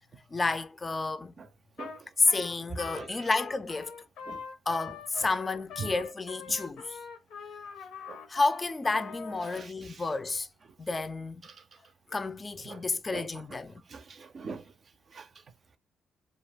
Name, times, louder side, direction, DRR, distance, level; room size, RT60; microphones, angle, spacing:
voice 1, 0.3-1.3 2.2-4.0 4.7-7.0 8.3-10.5 10.8-11.4 12.1-13.7, left 3 dB, 30° left, 0.4 m, -30 dB
Trumpet, 1.8-2.0 2.3-9.6, left 6 dB, 80° left, 0.6 m, -43 dB
voice 2, 2.9-3.3 4.3-4.4 5.8-5.9 6.5-6.6 8.1-8.2 9.5-10.0 11.4-11.6 12.7-12.8 13.1-13.6 13.9-14.7 15.1-15.3, right 5 dB, 50° right, 0.5 m, -43 dB
2.3 x 2.3 x 3.2 m
supercardioid pair, 65°, 0 cm